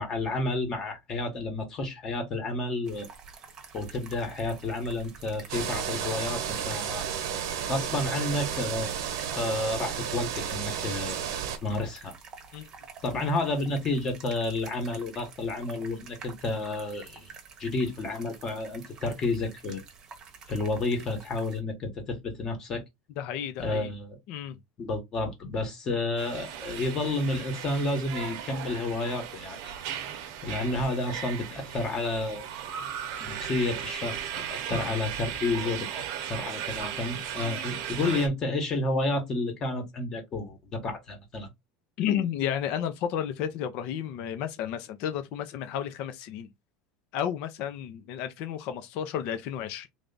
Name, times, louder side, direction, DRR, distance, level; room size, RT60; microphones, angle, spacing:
voice 1, 0.0-3.1 3.7-7.1 7.7-9.0 9.3-11.2 11.6-12.1 13.0-17.3 17.6-19.8 20.5-22.8 23.6-24.2 24.8-29.7 30.4-32.5 33.2-34.2 34.5-36.0 36.3-41.5, left 2 dB, 25° left, 1.1 m, -30 dB
sound 1, 2.9-21.6, right 5 dB, 25° right, 0.9 m, -49 dB
sound 2, 5.5-11.6, right 8 dB, 85° right, 0.9 m, -32 dB
voice 2, 23.2-23.9 24.3-24.5 34.6-34.8 42.0-46.5 47.1-49.9, left 9 dB, 50° left, 0.6 m, -32 dB
sound 3, 26.2-38.3, right 9 dB, 60° right, 0.8 m, -36 dB
3.3 x 2.4 x 3.9 m
supercardioid pair, 160°, 2 cm